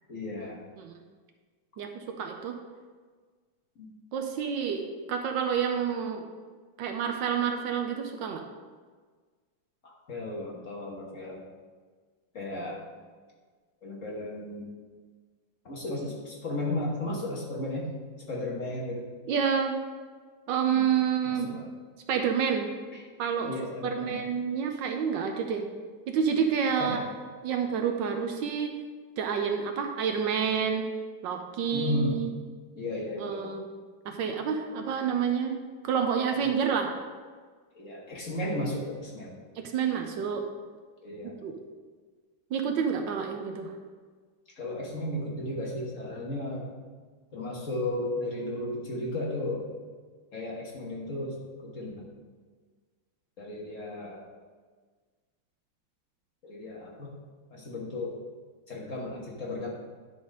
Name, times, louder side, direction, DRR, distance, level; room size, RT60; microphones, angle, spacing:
voice 1, 0.1-0.6 3.8-3.9 10.1-11.4 12.3-12.8 13.8-14.6 15.6-17.9 18.3-19.0 20.8-20.9 21.2-21.6 22.9-23.0 23.4-24.2 26.8-27.0 31.7-32.2 32.8-33.5 34.7-34.9 36.3-36.5 37.7-39.3 39.9-40.1 41.0-41.3 44.6-46.7 47.3-49.6 50.3-51.4 51.7-52.0 53.4-54.2 56.4-57.1 57.5-58.1 58.7-59.7, left 1 dB, 45° left, -3 dB, 1.5 m, -34 dB
voice 2, 1.8-2.5 4.1-6.3 6.8-8.4 19.3-19.8 20.5-21.5 22.1-22.7 23.2-23.6 23.8-25.7 26.1-27.0 27.4-28.7 29.2-30.8 31.2-32.3 33.2-33.6 34.0-36.9 39.6-40.4 41.4-41.6 42.5-43.7, right 7 dB, 70° right, 4 dB, 1.3 m, -28 dB
10.0 x 4.0 x 5.0 m, 1.5 s
omnidirectional pair, 2.2 m